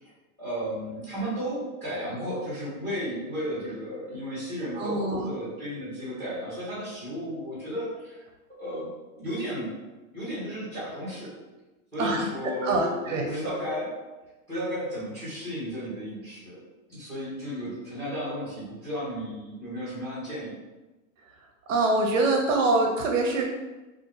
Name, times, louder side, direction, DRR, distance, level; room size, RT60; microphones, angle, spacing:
voice 1, 0.4-8.2 8.6-8.9 9.1-9.7 10.1-11.3 11.9-14.0 14.5-16.6 16.9-20.6, equal, 5° left, -8 dB, 1.1 m, -34 dB
voice 2, 4.7-5.3 12.0-13.3 21.7-23.4, right 2 dB, 60° right, 2 dB, 0.6 m, -25 dB
2.6 x 2.4 x 3.7 m, 1.1 s
supercardioid pair, 175°, 43 cm